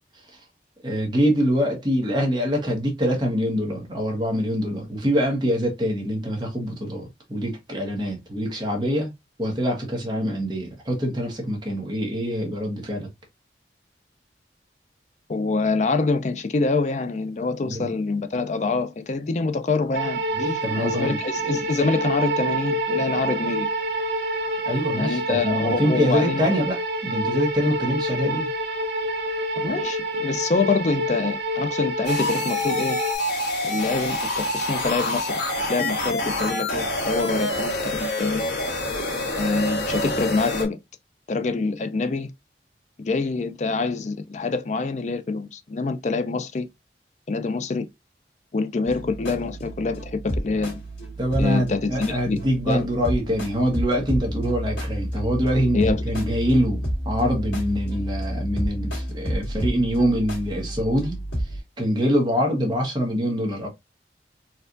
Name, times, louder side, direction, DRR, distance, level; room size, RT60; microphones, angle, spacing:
voice 1, 0.8-9.1 9.4-13.1 17.6-17.9 20.3-21.2 24.6-28.5 51.2-61.2 61.8-63.7, equal, 25° right, 1.1 m, -24 dB
voice 2, 15.3-20.2 20.8-23.7 24.9-26.5 29.6-33.0 33.6-38.5 39.4-40.8 41.3-42.3 43.0-46.7 47.3-47.9 48.5-50.8 51.4-52.4 52.7-52.9 55.7-56.2, left 3 dB, 40° left, 0.4 m, -25 dB
sound 1, 19.9-33.2, right 1 dB, 75° right, 1.1 m, -27 dB
sound 2, 32.0-40.6, left 1 dB, 70° left, 1.4 m, -27 dB
sound 3, 48.9-61.6, equal, 90° left, 2.1 m, -30 dB
4.3 x 2.4 x 2.5 m
head